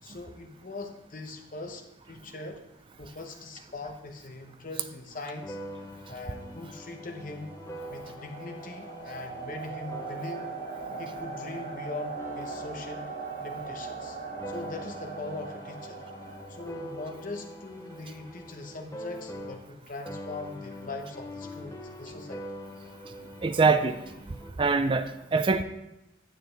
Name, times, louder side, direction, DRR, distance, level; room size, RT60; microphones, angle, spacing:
voice 1, 0.0-2.6 3.0-5.6 6.1-10.5 11.0-13.2 13.4-14.2 14.5-16.0 16.5-22.4, left 3 dB, 40° left, 5 dB, 0.9 m, -41 dB
sound 1, 5.4-19.8 20.1-24.5, equal, 15° left, 0.6 m, -44 dB
sound 2, 6.4-17.3, right 4 dB, 50° right, 2.3 m, -40 dB
voice 2, 23.4-24.0 24.6-25.6, right 4 dB, 25° right, 9 dB, 0.3 m, -23 dB
9.1 x 7.9 x 3.3 m, 0.91 s
head